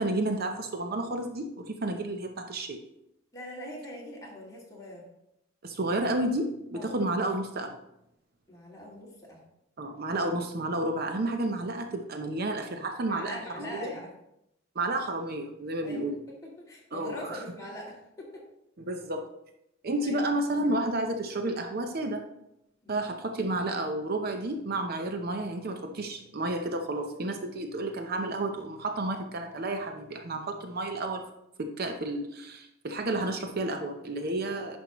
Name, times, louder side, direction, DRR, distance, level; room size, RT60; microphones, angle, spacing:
voice 1, 0.0-2.8 5.6-7.8 9.8-13.9 14.8-16.2 16.9-17.4 18.9-19.3 19.8-22.2 22.9-31.2 31.6-34.8, right 2 dB, 50° right, 5 dB, 0.7 m, -31 dB
voice 2, 3.3-5.1 6.7-6.9 8.5-9.4 13.1-14.1 15.8-18.4 20.0-20.2 22.8-23.1, equal, 20° left, -5 dB, 2.3 m, -42 dB
10.5 x 5.4 x 3.0 m, 0.83 s
head